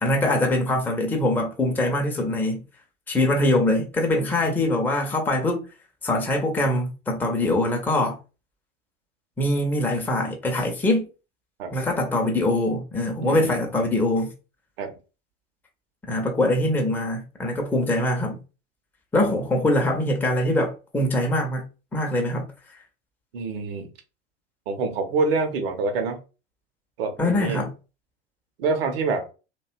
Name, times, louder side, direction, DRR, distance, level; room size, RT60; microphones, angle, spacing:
voice 1, 0.0-2.6 3.1-5.6 6.0-8.2 9.4-11.1 11.7-14.3 16.0-18.4 19.1-21.6 21.9-22.5 27.2-27.7, left 1 dB, 5° left, 0.5 m, -23 dB
voice 2, 13.2-13.8 14.8-14.9 23.3-23.9 24.7-26.2 27.0-27.6 28.6-29.3, right 4 dB, 60° right, 0.7 m, -26 dB
2.6 x 2.2 x 2.4 m
figure-of-eight pair, 75°, 33 cm